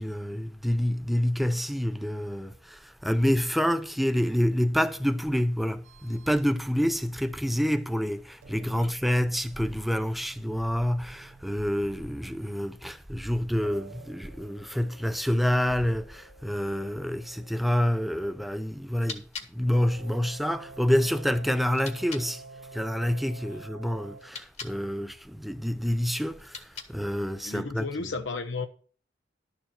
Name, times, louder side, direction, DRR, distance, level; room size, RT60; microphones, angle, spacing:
voice 1, 0.0-19.2 19.5-22.4 22.7-28.1, equal, ahead, 0.6 m, -27 dB
sound 1, 5.2-7.4 7.8-12.4 12.8-15.1 15.5-16.4, equal, 15° right, 1.2 m, -49 dB
sound 2, 5.8-6.5 8.4-12.5 13.6-18.7 19.7-24.3, right 3 dB, 85° right, 0.9 m, -49 dB
sound 3, 18.9-22.3 24.1-24.8 26.3-27.2, left 5 dB, 35° left, 1.4 m, -44 dB
voice 2, 27.4-28.7, left 4 dB, 75° left, 0.8 m, -34 dB
11.5 x 7.1 x 4.4 m
head